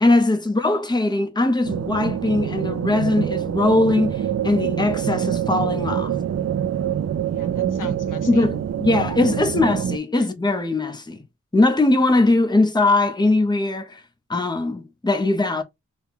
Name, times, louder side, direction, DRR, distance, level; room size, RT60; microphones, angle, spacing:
voice 1, 0.0-6.2 7.8-7.9 8.3-11.2 11.5-14.0 14.3-15.6, left 2 dB, 15° left, 0.8 m, -20 dB
sound 1, 1.6-10.0, right 9 dB, 55° right, 0.5 m, -25 dB
voice 2, 6.7-8.5 10.1-10.3, left 4 dB, 80° left, 0.9 m, -42 dB
4.3 x 2.3 x 3.6 m
wide cardioid pair, 80°, 31 cm